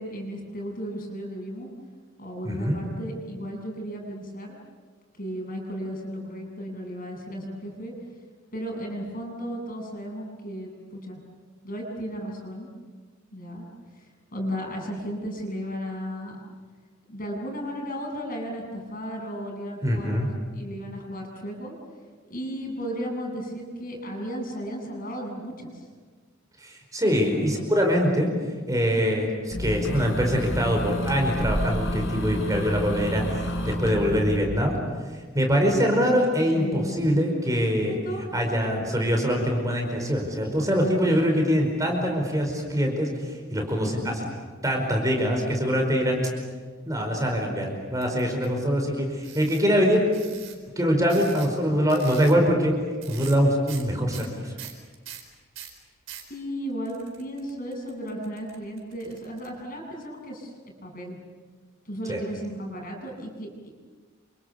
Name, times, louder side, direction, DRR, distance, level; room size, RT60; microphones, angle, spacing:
voice 1, 0.0-1.7 2.2-4.6 5.2-7.9 8.5-11.2 11.6-12.7 13.3-13.7 14.0-16.4 17.1-21.8 22.3-25.9 27.1-27.6 36.5-37.0 37.9-38.3 43.8-44.2 56.3-60.5 60.8-61.2 61.9-63.7, equal, 45° left, 1 dB, 7.4 m, -35 dB
voice 2, 2.4-2.8 19.8-20.3 26.6-28.3 28.7-33.2 33.6-34.8 35.3-38.0 38.3-43.1 43.5-44.2 44.6-46.3 46.9-50.1 50.8-52.7 53.1-54.5 62.1-62.2, equal, 15° right, 2 dB, 4.9 m, -23 dB
sound 1, 29.5-34.4, equal, 65° left, 5.8 m, -29 dB
sound 2, 48.0-48.5 49.2-49.6 50.1-50.5 51.1-51.6 51.9-52.4 53.0-53.4 53.7-53.8 54.1-56.3 56.8-59.5, right 10 dB, 70° right, 4.6 m, -43 dB
28.5 x 27.0 x 7.0 m, 1.5 s
head